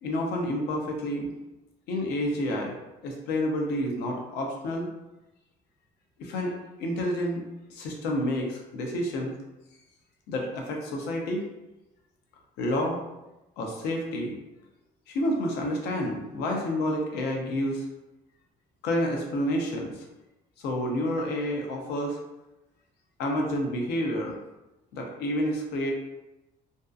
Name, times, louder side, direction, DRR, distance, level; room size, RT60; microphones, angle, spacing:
voice 1, 0.0-1.3 1.9-2.8 3.0-4.9 6.2-6.5 6.8-7.4 7.7-9.3 10.3-11.4 12.6-13.0 13.6-14.4 15.1-17.8 18.8-19.9 20.6-22.2 23.2-24.4 24.9-25.9, left 1 dB, 85° left, 1 dB, 0.6 m, -29 dB
2.6 x 2.3 x 2.4 m, 0.99 s
cardioid pair, 110°, 17 cm